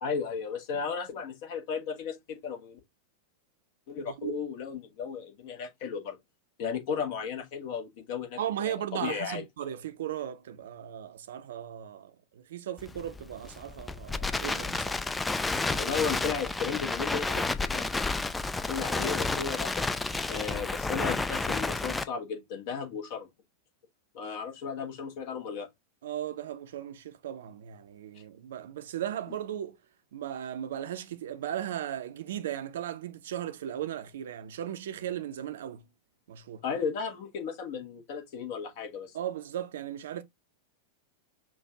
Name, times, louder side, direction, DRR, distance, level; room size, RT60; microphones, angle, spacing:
voice 1, 0.0-2.8 3.9-6.2 6.6-9.4 15.7-17.9 18.7-19.9 20.3-23.3 24.1-25.7 36.6-39.2, left 6 dB, 50° left, 1.3 m, -35 dB
voice 2, 8.4-15.1 26.0-29.8 30.1-35.8 36.3-36.6 39.1-40.2, right 10 dB, 60° right, 0.6 m, -37 dB
Crackle, 12.8-22.0, left 3 dB, 10° left, 0.4 m, -31 dB
5.9 x 2.5 x 2.8 m
figure-of-eight pair, 90°, 0 cm